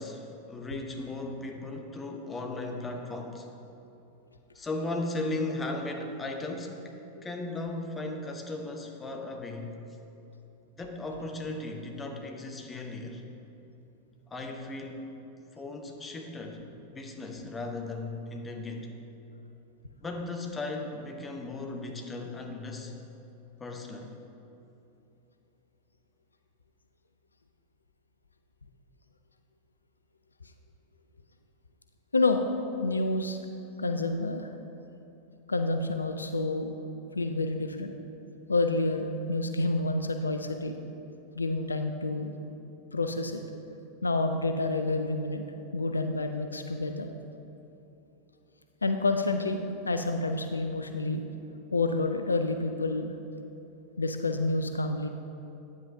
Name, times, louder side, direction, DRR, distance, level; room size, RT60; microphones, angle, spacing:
voice 1, 0.0-3.5 4.5-6.8 7.2-9.7 10.8-13.2 14.3-15.0 15.6-16.6 16.9-18.9 20.0-22.9 23.6-24.2, left 2 dB, 15° left, 2 dB, 0.8 m, -36 dB
voice 2, 32.1-32.4 32.8-33.4 33.8-34.5 35.5-36.7 37.2-37.9 38.5-40.7 41.4-42.3 42.9-43.4 44.0-45.4 45.7-47.1 48.8-51.2 51.7-53.1 54.0-55.1, left 2 dB, 80° left, 6 dB, 0.3 m, -28 dB
9.3 x 8.0 x 2.7 m, 3.0 s
figure-of-eight pair, 90°, 0 cm